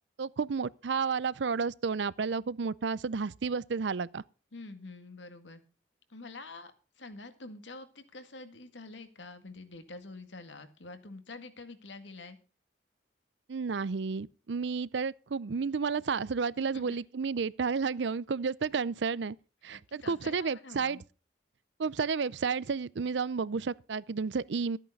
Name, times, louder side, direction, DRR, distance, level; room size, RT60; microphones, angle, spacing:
voice 1, 0.2-4.2 13.5-19.4 19.6-21.0 21.8-24.8, right 5 dB, 75° right, 0.5 m, -31 dB
voice 2, 4.5-5.6 6.1-12.4 16.6-17.0 19.7-21.0, left 3 dB, 80° left, 1.9 m, -47 dB
13.5 x 9.0 x 5.4 m
head